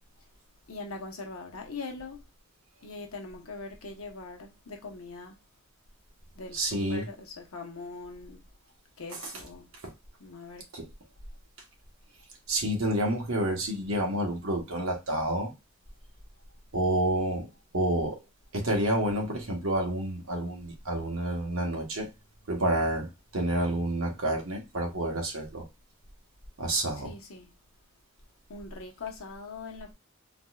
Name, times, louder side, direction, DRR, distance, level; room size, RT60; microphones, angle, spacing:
voice 1, 0.7-2.2 2.8-5.3 6.4-8.4 9.0-9.7 10.2-10.6 27.0-27.5 28.5-29.9, left 3 dB, 75° left, 0.9 m, -41 dB
voice 2, 6.5-7.1 9.1-9.2 9.8-9.9 10.7-10.9 12.5-15.5 16.7-17.5 17.7-18.2 18.5-22.1 22.5-25.6 26.6-27.1, right 1 dB, 65° right, 1.2 m, -29 dB
4.0 x 2.6 x 2.3 m
head